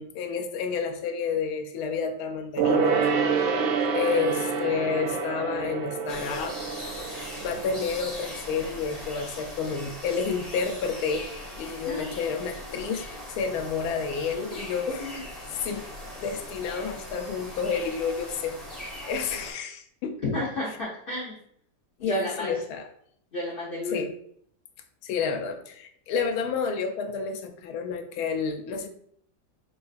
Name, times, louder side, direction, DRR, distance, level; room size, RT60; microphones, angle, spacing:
voice 1, 0.0-3.3 3.9-6.6 7.0-15.3 15.6-15.9 16.2-20.2 22.0-22.9 23.9-24.1 25.0-28.9, left 5 dB, 75° left, 5 dB, 1.0 m, -30 dB
Gong, 2.6-8.5 8.7-8.8, right 5 dB, 70° right, 0.9 m, -27 dB
sound 1, 6.1-19.5, left 1 dB, ahead, 0.4 m, -40 dB
voice 2, 20.2-21.4 22.0-22.5 23.3-24.1, left 1 dB, 55° left, -4 dB, 0.6 m, -31 dB
4.6 x 2.4 x 2.4 m, 0.66 s
omnidirectional pair, 1.8 m